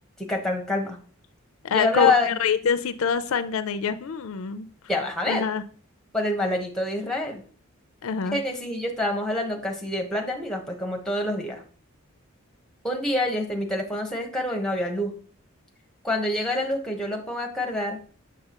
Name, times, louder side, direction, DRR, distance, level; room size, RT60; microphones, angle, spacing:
voice 1, 0.2-1.0 1.7-2.3 4.9-5.4 6.1-7.4 8.3-11.6 12.8-15.1 16.0-18.0, left 2 dB, ahead, 2 dB, 0.9 m, -26 dB
voice 2, 1.6-4.7 5.3-5.6 8.0-8.4, left 6 dB, 70° left, 11 dB, 0.4 m, -25 dB
6.7 x 6.2 x 2.9 m, 0.44 s
head